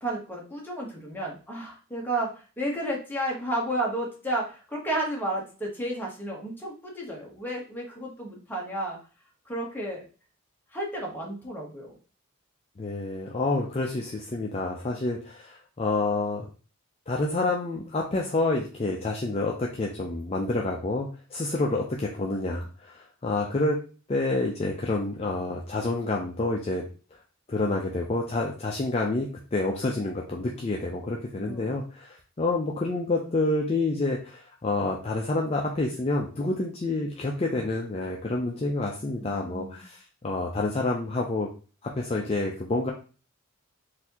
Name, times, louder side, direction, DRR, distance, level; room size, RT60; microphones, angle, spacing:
voice 1, 0.0-9.0 9.5-10.0 10.7-11.9 31.3-31.7 39.2-39.8, right 1 dB, 10° left, -2 dB, 0.9 m, -32 dB
voice 2, 12.8-16.5 17.1-23.8 24.1-26.8 27.5-41.5 42.0-42.9, left 2 dB, 30° left, -1 dB, 0.4 m, -28 dB
4.0 x 2.6 x 2.8 m, 0.37 s
head